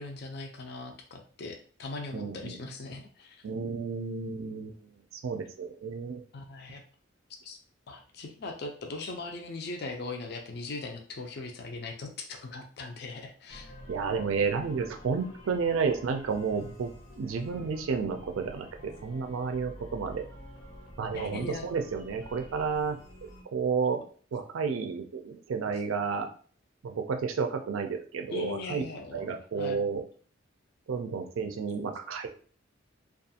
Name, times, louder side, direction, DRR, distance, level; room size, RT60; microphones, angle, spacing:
voice 1, 0.0-3.4 6.3-6.8 7.4-7.6 7.9-13.7 21.1-21.7 28.3-29.3 29.6-29.8, left 3 dB, 55° left, 4 dB, 0.4 m, -39 dB
voice 2, 2.1-2.5 3.4-4.9 5.1-6.2 13.9-16.9 17.2-20.2 21.0-24.0 24.3-26.3 26.8-28.8 29.1-30.0 30.9-32.3, right 5 dB, 85° right, 5 dB, 0.4 m, -31 dB
sound 1, 13.5-23.4, left 1 dB, 75° left, 0.8 m, -48 dB
2.4 x 2.3 x 2.7 m, 0.43 s
head